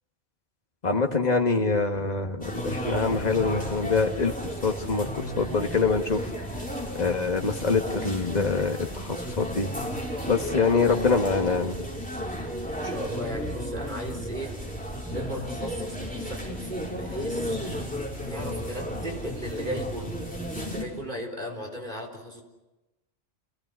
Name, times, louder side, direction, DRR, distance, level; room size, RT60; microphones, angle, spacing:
voice 1, 0.8-6.3 6.9-9.7 10.3-11.9, left 4 dB, 40° left, 4 dB, 1.8 m, -25 dB
sound 1, 2.4-20.9, equal, 10° left, 5.8 m, -33 dB
voice 2, 10.7-11.0 12.8-14.6 15.1-17.6 18.3-20.2 20.5-22.4, equal, 50° right, 1 dB, 4.4 m, -36 dB
29.5 x 18.0 x 8.1 m, 1.1 s
omnidirectional pair, 1.1 m